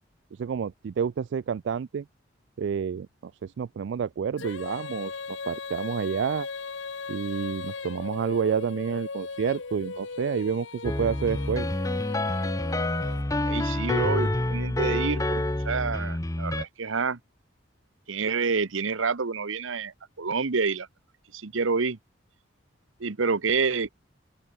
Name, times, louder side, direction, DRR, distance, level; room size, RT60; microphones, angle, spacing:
voice 1, 0.4-2.1 2.6-6.5 7.1-11.7, right 7 dB, 65° right, 0.3 m, -29 dB
Female singing, 4.4-13.5, left 4 dB, 75° left, 1.0 m, -38 dB
sound 1, 10.8-16.6, left 1 dB, 15° left, 0.8 m, -28 dB
voice 2, 13.4-17.2 18.1-20.9 21.3-22.0 23.0-23.9, right 4 dB, 85° right, 1.0 m, -28 dB
open air
head